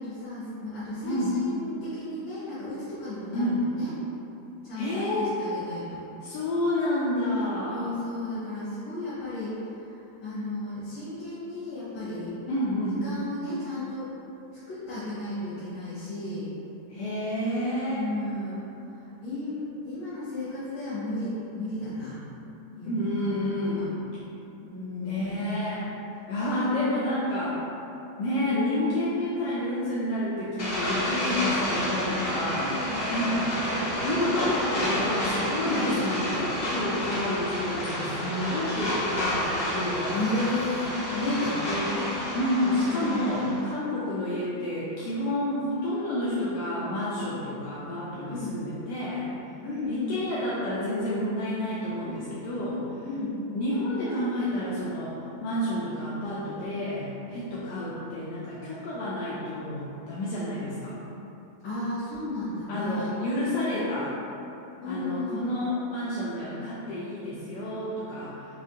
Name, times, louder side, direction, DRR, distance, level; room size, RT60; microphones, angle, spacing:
voice 1, 0.0-3.9 4.6-6.0 7.7-9.6 9.9-12.3 13.0-14.1 14.7-16.5 17.9-18.6 18.9-22.2 22.8-23.8 24.6-25.3 32.5-33.0 35.6-36.0 40.1-41.6 42.9-43.5 48.3-48.6 49.6-50.2 53.0-53.4 61.6-63.1 64.8-65.5, left 2 dB, 90° left, -13 dB, 1.7 m, -34 dB
voice 2, 4.7-5.4 6.2-7.9 12.5-13.1 16.9-18.1 22.8-23.9 25.0-25.9 26.3-27.7 28.2-32.7 33.1-33.5 34.0-40.1 41.6-42.0 42.3-49.3 49.8-52.8 53.5-55.1 55.4-61.0 62.7-64.1 64.8-68.3, left 1 dB, 75° left, -8 dB, 1.1 m, -29 dB
sound 1, 30.6-43.6, left 1 dB, 55° left, 0.6 m, -30 dB
4.9 x 2.6 x 2.8 m, 3.0 s
omnidirectional pair, 2.0 m